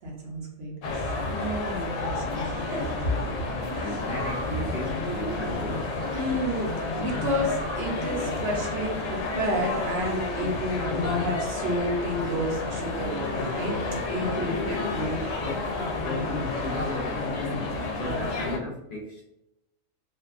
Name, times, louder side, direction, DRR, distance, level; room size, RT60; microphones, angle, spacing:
voice 1, 0.0-3.1 3.7-4.2 4.9-5.0 6.1-13.8 14.1-14.8 18.0-18.2, equal, 60° right, -2 dB, 0.9 m, -31 dB
sound 1, 0.8-18.6, left 3 dB, 85° left, 0.9 m, -30 dB
voice 2, 3.8-6.0 14.2-19.2, left 1 dB, 60° left, -3 dB, 0.6 m, -35 dB
2.6 x 2.2 x 2.3 m, 0.86 s
omnidirectional pair, 1.3 m